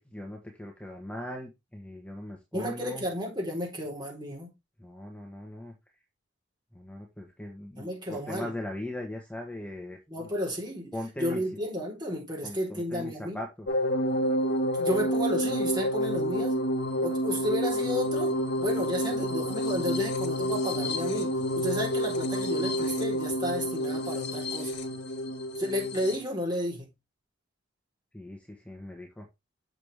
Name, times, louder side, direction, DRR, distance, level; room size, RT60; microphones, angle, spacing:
voice 1, 0.1-3.1 4.8-5.7 6.7-10.3 10.9-11.4 12.4-13.7 28.1-29.3, left 1 dB, 5° left, 1.4 m, -39 dB
voice 2, 2.5-4.5 7.8-8.5 10.1-13.4 14.7-16.6 17.0-24.8 25.6-26.9, equal, 25° right, 4.0 m, -32 dB
sound 1, 13.7-26.2, equal, 60° left, 1.6 m, -29 dB
7.4 x 6.5 x 3.5 m
head